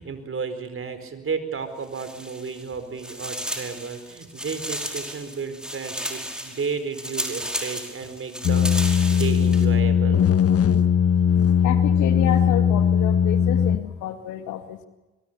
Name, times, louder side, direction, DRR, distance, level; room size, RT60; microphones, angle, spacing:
voice 1, 0.0-10.2, right 5 dB, 45° right, 9 dB, 4.7 m, -33 dB
sound 1, 1.8-2.7 3.0-9.7, equal, 5° right, 5.2 m, -34 dB
sound 2, 8.4-13.8, left 8 dB, 55° left, 1.3 m, -19 dB
voice 2, 11.6-14.9, left 10 dB, 80° left, 8 dB, 2.2 m, -30 dB
24.5 x 23.5 x 6.9 m, 1.1 s
hypercardioid pair, 50°, 29 cm